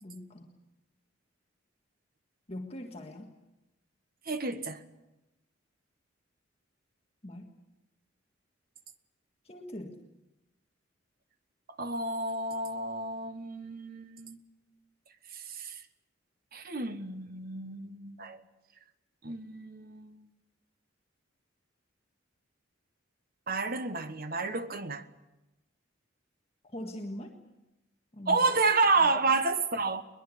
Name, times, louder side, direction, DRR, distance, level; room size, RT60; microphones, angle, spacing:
voice 1, 0.0-0.5 2.5-3.3 7.2-7.5 9.4-10.0 26.6-27.4 28.1-28.4 29.1-29.2, left 1 dB, 30° left, 1.6 m, -41 dB
voice 2, 4.3-4.8 11.8-14.4 15.3-15.8 16.5-18.4 19.2-20.3 23.5-25.0 28.3-30.0, right 3 dB, 50° right, 1.3 m, -30 dB
21.5 x 21.0 x 8.5 m
head